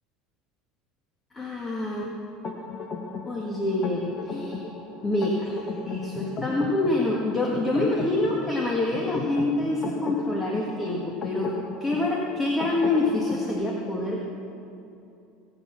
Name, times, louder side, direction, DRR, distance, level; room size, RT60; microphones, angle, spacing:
voice 1, 1.3-2.1 3.2-4.7 5.0-11.5 11.8-14.2, left 2 dB, 20° left, -1 dB, 1.8 m, -26 dB
sound 1, 2.4-13.5, left 4 dB, 35° left, 1.6 m, -36 dB
20.0 x 8.3 x 6.0 m, 2.7 s
supercardioid pair, 100°, 0 cm